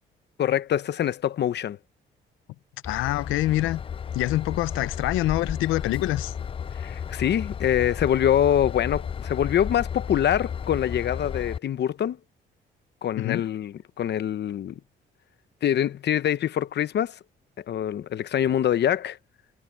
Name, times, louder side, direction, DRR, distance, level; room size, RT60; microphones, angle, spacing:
voice 1, 0.4-1.8 6.8-12.2 13.0-14.8 15.6-17.2 17.7-19.2, left 10 dB, 60° left, 0.9 m, -24 dB
voice 2, 2.8-3.8 4.1-6.3 13.2-13.4, left 16 dB, 90° left, 0.6 m, -25 dB
Train / Engine, 2.8-11.6, left 7 dB, 30° left, 0.3 m, -33 dB
cardioid pair, 90°, 20 cm